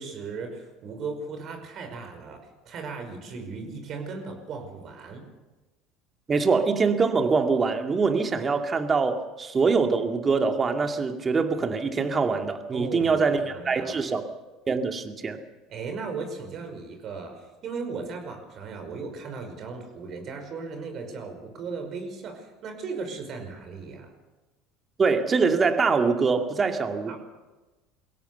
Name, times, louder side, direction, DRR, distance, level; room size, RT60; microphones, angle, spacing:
voice 1, 0.0-5.2 12.7-13.2 13.5-14.0 15.7-24.1 27.0-27.2, right 4 dB, 50° right, 5 dB, 5.4 m, -37 dB
voice 2, 6.3-14.2 14.7-15.4 25.0-27.1, right 4 dB, 30° right, 5 dB, 2.3 m, -24 dB
23.0 x 17.0 x 7.0 m, 1.2 s
hypercardioid pair, 75°, 0 cm